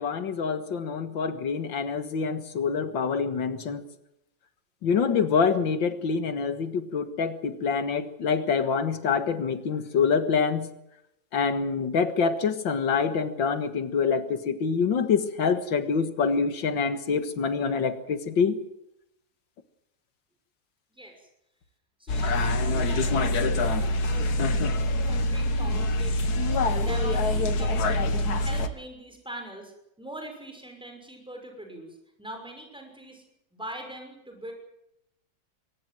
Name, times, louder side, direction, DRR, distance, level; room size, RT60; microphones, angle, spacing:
voice 1, 0.0-3.8 4.8-10.7 11.3-18.6, left 5 dB, 90° left, 11 dB, 2.3 m, -26 dB
voice 2, 20.9-21.3 22.0-26.5 26.8-28.1 28.4-29.7 30.0-33.2 33.5-34.5, right 1 dB, ahead, 3 dB, 5.9 m, -42 dB
sound 1, 22.1-28.7, left 1 dB, 60° left, 1.9 m, -25 dB
23.5 x 19.0 x 7.7 m, 0.84 s
omnidirectional pair, 2.0 m